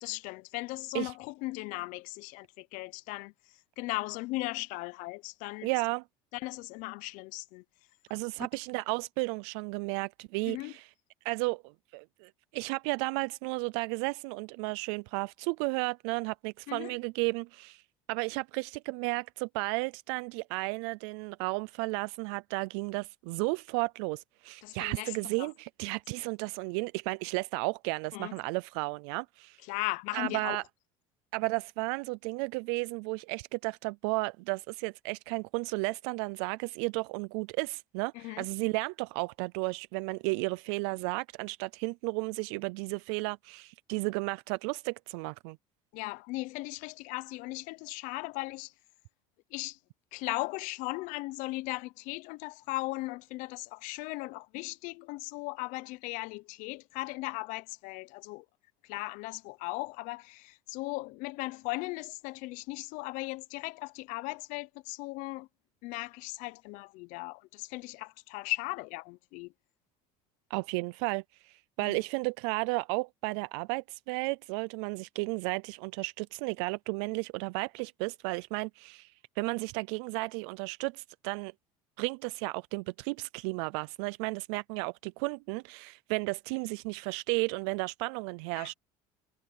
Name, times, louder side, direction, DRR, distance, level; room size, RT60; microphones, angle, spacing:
voice 1, 0.0-3.3 3.8-5.7 6.3-7.6 10.4-10.7 16.7-16.9 24.6-25.5 28.1-28.4 29.7-30.6 38.1-38.5 45.9-48.7 49.5-49.8 50.1-58.4 58.9-65.5 65.8-69.5 71.8-72.0 88.6-88.7, left 22 dB, 75° left, 0.7 m, -37 dB
voice 2, 5.6-6.0 8.1-10.9 11.2-11.6 11.9-17.8 18.1-29.6 30.1-30.6 31.3-45.6 70.5-81.5 82.0-88.7, right 27 dB, 85° right, 0.4 m, -33 dB
supercardioid pair, 110°, 13 cm